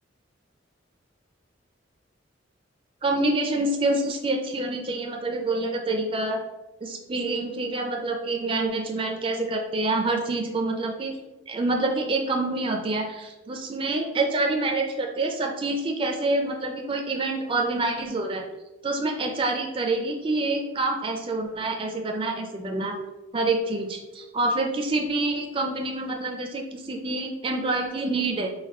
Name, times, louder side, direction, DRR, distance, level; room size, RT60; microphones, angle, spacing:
voice 1, 3.0-6.4 6.8-11.2 11.5-18.5 18.8-23.0 23.3-28.5, right 2 dB, 25° right, 2 dB, 0.4 m, -27 dB
4.0 x 2.3 x 4.2 m, 1.0 s
head